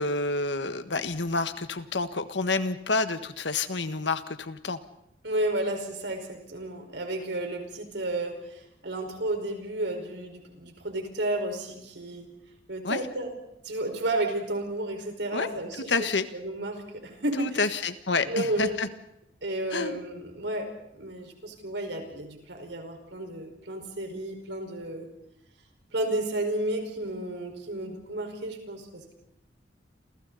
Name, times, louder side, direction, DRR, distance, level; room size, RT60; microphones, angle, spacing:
voice 1, 0.0-4.8 12.8-13.0 15.3-15.5 15.9-16.3 17.4-18.9 19.7-20.0, left 3 dB, 80° left, 10 dB, 1.6 m, -28 dB
voice 2, 5.2-12.3 12.7-13.3 13.6-16.1 16.3-17.6 18.2-18.8 19.4-25.1 25.9-29.1, right 1 dB, 80° right, 3 dB, 5.3 m, -32 dB
29.0 x 28.5 x 4.2 m, 0.84 s
head